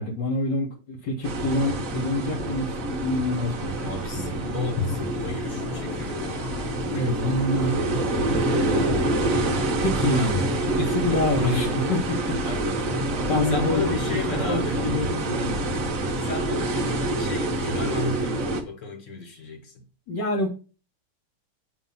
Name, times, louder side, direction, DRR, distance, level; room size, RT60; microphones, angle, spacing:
voice 1, 0.0-4.3 6.8-8.9 9.8-10.4 10.8-12.4 13.3-14.0 14.3-15.6 20.1-20.5, left 1 dB, 60° left, 1.7 m, -27 dB
sound 1, 1.2-18.6, right 1 dB, 50° right, 1.0 m, -27 dB
voice 2, 3.8-6.5 10.1-10.5 10.8-11.0 12.4-14.9 16.2-19.8, left 3 dB, 40° left, 1.5 m, -35 dB
sound 2, 4.8-14.9, left 7 dB, 80° left, 1.5 m, -37 dB
7.6 x 2.7 x 5.4 m
omnidirectional pair, 2.3 m